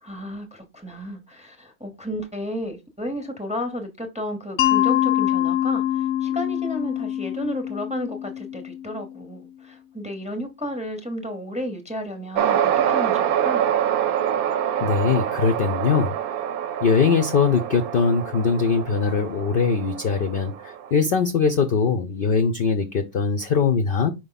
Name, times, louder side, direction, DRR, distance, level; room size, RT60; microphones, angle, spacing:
voice 1, 0.0-13.7, equal, 5° right, 0.7 m, -33 dB
Mallet percussion, 4.6-9.4, left 12 dB, 90° left, 1.1 m, -24 dB
sound 1, 12.3-20.9, right 9 dB, 85° right, 1.1 m, -25 dB
voice 2, 14.8-16.1 16.8-24.1, left 5 dB, 60° left, 0.6 m, -21 dB
5.1 x 4.6 x 3.9 m
omnidirectional pair, 1.5 m